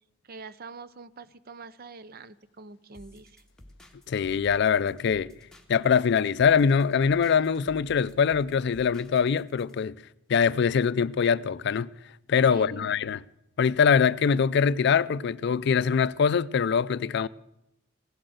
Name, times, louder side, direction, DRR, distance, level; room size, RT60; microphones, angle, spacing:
voice 1, 0.2-3.4 12.5-13.0, right 3 dB, 50° right, 0.6 m, -44 dB
sound 1, 2.9-9.8, left 1 dB, 5° left, 1.5 m, -53 dB
voice 2, 4.1-5.3 5.7-10.0 10.3-11.9 12.3-13.2 13.6-17.3, left 6 dB, 60° left, 0.4 m, -23 dB
16.0 x 7.8 x 7.8 m
head